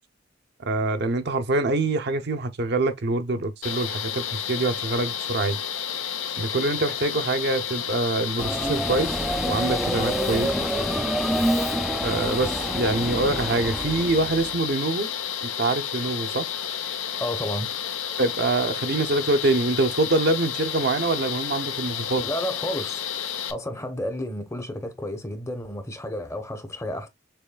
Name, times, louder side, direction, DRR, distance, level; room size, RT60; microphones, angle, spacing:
voice 1, 0.6-5.6 6.4-10.5 12.0-15.1 15.4-16.5 18.2-22.2, right 2 dB, 55° right, 0.6 m, -25 dB
sound 1, 3.6-23.5, left 8 dB, 85° left, 0.8 m, -31 dB
Subway metro underground, 8.4-14.6, right 1 dB, ahead, 0.3 m, -27 dB
voice 2, 17.2-17.7 22.2-23.0 23.5-27.1, left 1 dB, 15° left, 0.8 m, -31 dB
7.0 x 3.1 x 2.2 m
head